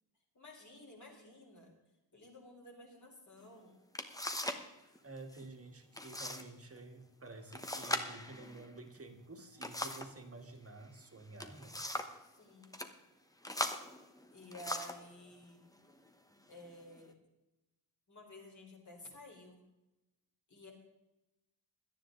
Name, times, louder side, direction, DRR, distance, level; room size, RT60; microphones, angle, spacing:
voice 1, 0.3-1.7 2.1-3.8 12.2-12.8 14.3-15.7 16.5-17.2 18.1-19.6 20.5-20.7, equal, 40° left, 0 dB, 4.0 m, -53 dB
sound 1, 3.4-3.5 3.9-4.7 5.0-5.4 5.9-6.5 6.8-6.9 7.5-10.2 11.2-12.2 12.6-12.9 13.4-15.1 15.8-16.0 16.6-17.1, left 1 dB, 10° left, 1.0 m, -40 dB
voice 2, 5.0-11.8, right 2 dB, 30° right, 5 dB, 1.9 m, -51 dB
17.5 x 12.5 x 3.8 m, 0.99 s
wide cardioid pair, 175°, 45 cm